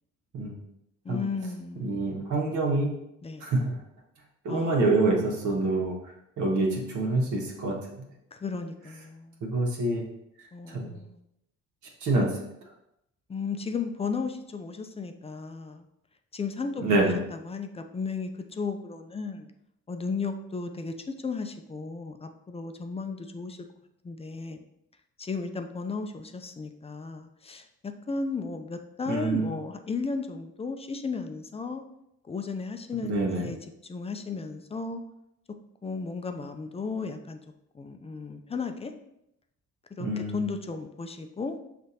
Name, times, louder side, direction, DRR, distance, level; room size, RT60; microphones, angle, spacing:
voice 1, 1.0-2.0 3.2-3.5 4.5-4.9 8.3-9.4 10.5-11.2 13.3-15.9 16.3-19.5 19.9-23.6 24.0-24.6 25.2-31.8 32.2-33.6 33.8-35.0 35.8-37.4 37.7-38.9 40.0-41.6, left 4 dB, 20° left, 6 dB, 0.4 m, -34 dB
voice 2, 1.8-2.9 3.4-3.8 4.4-5.9 6.4-8.0 9.4-10.0 10.7-10.9 12.0-12.4 16.8-17.1 29.1-29.5 33.0-33.5 40.0-40.4, right 2 dB, 75° right, -2 dB, 1.2 m, -26 dB
6.3 x 2.5 x 2.8 m, 0.81 s
cardioid pair, 90°, 30 cm